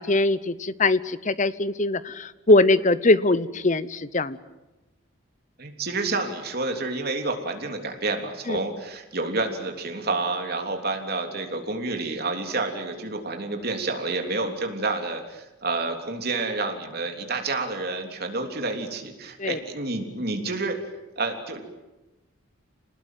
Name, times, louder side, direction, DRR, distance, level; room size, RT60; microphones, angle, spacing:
voice 1, 0.0-4.4 8.5-8.6 19.4-19.6, left 2 dB, 35° left, 16 dB, 0.9 m, -21 dB
voice 2, 5.6-20.8 21.2-21.6, right 3 dB, 45° right, 4 dB, 3.3 m, -29 dB
28.5 x 19.5 x 9.3 m, 1.1 s
head